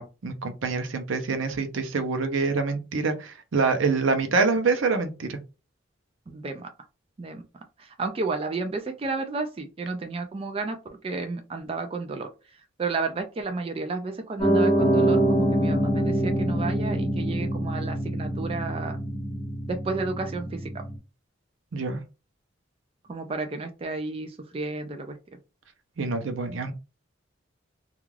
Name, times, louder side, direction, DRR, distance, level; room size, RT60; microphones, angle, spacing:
voice 1, 0.0-5.4 21.7-22.0 26.0-26.7, right 4 dB, 85° right, 0.6 m, -26 dB
voice 2, 6.3-6.7 7.2-7.4 7.8-10.8 11.0-12.3 12.8-19.0 19.7-20.6 23.1-25.2, right 3 dB, 30° right, 0.3 m, -32 dB
Piano, 14.4-20.9, right 1 dB, 25° left, 1.1 m, -25 dB
2.3 x 2.3 x 3.1 m
head